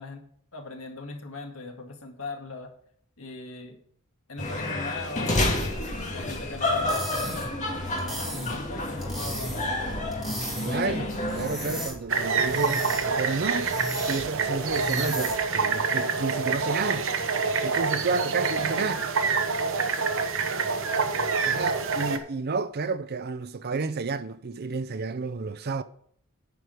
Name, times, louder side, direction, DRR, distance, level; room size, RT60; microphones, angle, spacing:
voice 1, 0.0-2.7 3.2-3.8 4.3-5.5 6.1-7.4 8.1-9.6 10.6-11.1 18.6-18.9, left 3 dB, 70° left, 1.9 m, -39 dB
sound 1, 4.4-11.9, left 1 dB, 35° left, 1.9 m, -30 dB
sound 2, 6.7-15.6, right 1 dB, ahead, 3.4 m, -37 dB
voice 2, 10.6-13.7 14.0-17.1 17.6-19.0 19.9-20.0 21.4-25.8, right 4 dB, 50° right, 0.6 m, -31 dB
sound 3, 12.1-22.2, right 4 dB, 65° right, 1.0 m, -27 dB
9.9 x 5.0 x 7.8 m
head